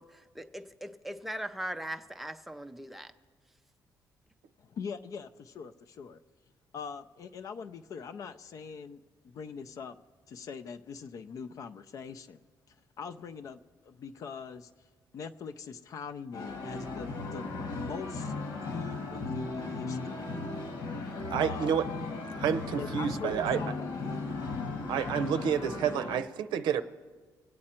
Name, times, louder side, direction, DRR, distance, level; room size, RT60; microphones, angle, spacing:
voice 1, 0.0-3.1, right 1 dB, ahead, 0.4 m, -40 dB
voice 2, 4.6-6.2 6.7-10.0 10.3-12.4 13.0-14.7 15.1-18.3 18.6-20.3 21.4-21.8 22.8-24.4, left 6 dB, 50° left, 0.5 m, -42 dB
sound 1, 16.3-26.2, left 3 dB, 80° left, 1.7 m, -36 dB
voice 3, 21.3-21.9 22.3-23.6 24.9-26.8, right 8 dB, 85° right, 0.7 m, -29 dB
25.0 x 8.6 x 4.3 m
cardioid pair, 170°, 8 cm